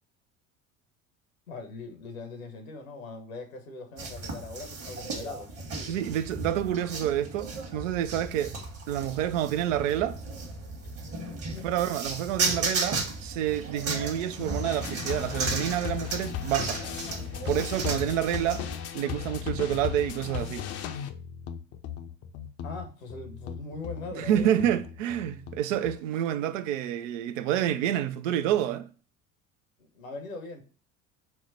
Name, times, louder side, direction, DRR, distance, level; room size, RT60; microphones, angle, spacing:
voice 1, 1.5-6.0 11.5-11.7 22.6-24.5 29.8-30.6, left 3 dB, 80° left, 1.0 m, -41 dB
sound 1, 4.0-18.8, right 3 dB, 35° right, 1.3 m, -35 dB
voice 2, 5.8-8.5 8.9-10.2 11.6-16.8 17.4-18.6 18.9-20.7 24.2-28.9, right 11 dB, 70° right, 0.5 m, -28 dB
sound 2, 14.6-26.0, left 9 dB, 40° left, 0.5 m, -37 dB
4.4 x 2.2 x 4.0 m
hypercardioid pair, 70°, 40 cm